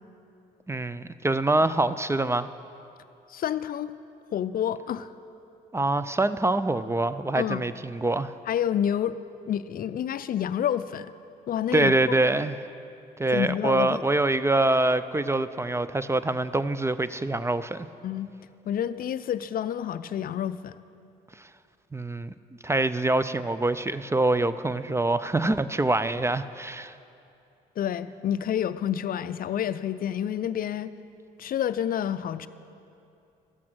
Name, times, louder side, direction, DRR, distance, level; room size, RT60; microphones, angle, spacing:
voice 1, 0.7-2.5 5.7-8.3 11.7-12.6 13.2-17.9 21.9-22.3 22.6-26.9, right 2 dB, 15° right, 14 dB, 0.4 m, -25 dB
voice 2, 3.3-3.9 4.3-5.1 7.4-7.6 8.5-9.2 9.5-11.1 11.5-11.9 13.3-14.0 18.0-18.3 18.7-20.8 27.8-30.9 31.4-32.5, left 10 dB, 55° left, 14 dB, 0.4 m, -28 dB
12.5 x 8.4 x 6.1 m, 2.6 s
supercardioid pair, 65°, 18 cm